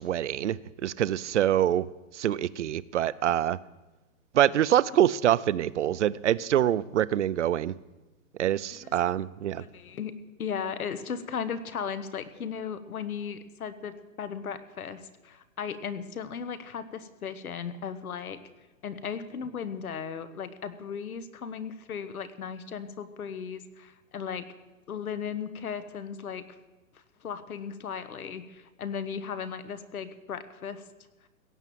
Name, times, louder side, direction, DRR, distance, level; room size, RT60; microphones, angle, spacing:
voice 1, 0.0-1.9 2.1-3.6 4.3-7.7 8.4-9.6, right 11 dB, 55° right, 19 dB, 0.5 m, -25 dB
voice 2, 9.6-10.1 10.4-18.4 18.8-24.5 24.9-26.4 27.2-30.8, left 7 dB, 80° left, 12 dB, 1.3 m, -36 dB
16.5 x 7.2 x 7.7 m, 1.1 s
hypercardioid pair, 165°, 43 cm